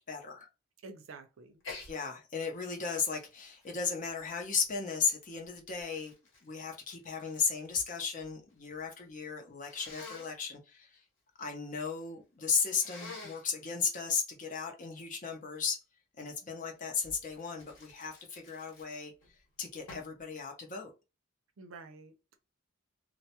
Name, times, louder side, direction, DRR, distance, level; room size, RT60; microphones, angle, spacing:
voice 1, 0.1-0.5 1.9-6.1 6.4-11.0 11.4-15.8 16.2-19.1 19.6-20.9, left 5 dB, 40° left, 0.6 m, -35 dB
voice 2, 0.8-1.6 21.6-22.4, right 3 dB, 85° right, 0.5 m, -49 dB
Sneeze, 1.6-1.9 2.4-4.8 5.5-7.9 8.2-8.8 9.7-10.3 12.8-13.5 17.0-19.3 19.9-20.2, left 3 dB, 70° left, 1.1 m, -49 dB
2.2 x 2.0 x 2.8 m
head